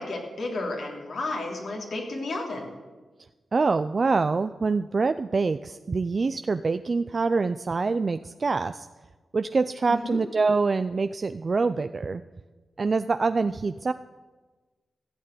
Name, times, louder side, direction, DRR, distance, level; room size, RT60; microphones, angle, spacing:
voice 1, 0.0-2.7 9.9-10.2, left 2 dB, 75° left, 0 dB, 3.0 m, -32 dB
voice 2, 3.5-8.9 9.3-12.2 12.8-13.9, right 4 dB, 55° right, 10 dB, 0.4 m, -25 dB
14.5 x 6.6 x 9.4 m, 1.3 s
cardioid pair, 50°, 0 cm